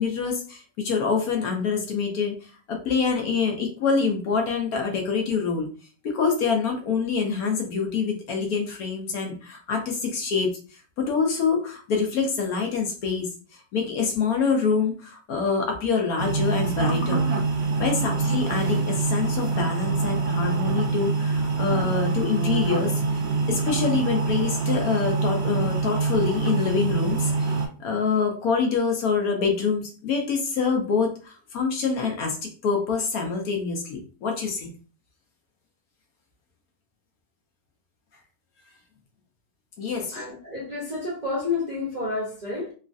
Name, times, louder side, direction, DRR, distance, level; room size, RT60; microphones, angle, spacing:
voice 1, 0.0-5.7 6.0-10.6 11.0-17.2 17.8-32.4 32.6-34.7 39.8-40.2, left 5 dB, 70° left, 2 dB, 1.0 m, -26 dB
sound 1, 16.2-27.7, right 4 dB, 60° right, 1.2 m, -25 dB
voice 2, 39.9-42.7, left 3 dB, 35° right, -6 dB, 0.7 m, -30 dB
3.1 x 2.4 x 2.5 m, 0.38 s
omnidirectional pair, 1.8 m